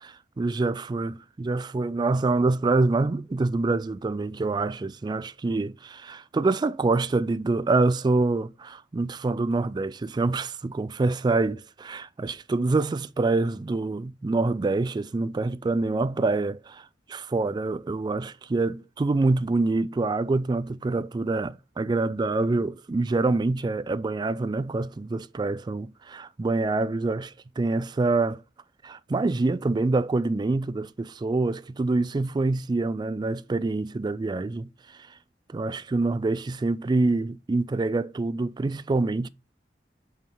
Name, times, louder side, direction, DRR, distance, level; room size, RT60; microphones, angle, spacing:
voice 1, 0.4-28.4 28.8-35.1 35.5-39.3, right 3 dB, 25° right, 0.3 m, -26 dB
5.3 x 4.7 x 5.4 m
head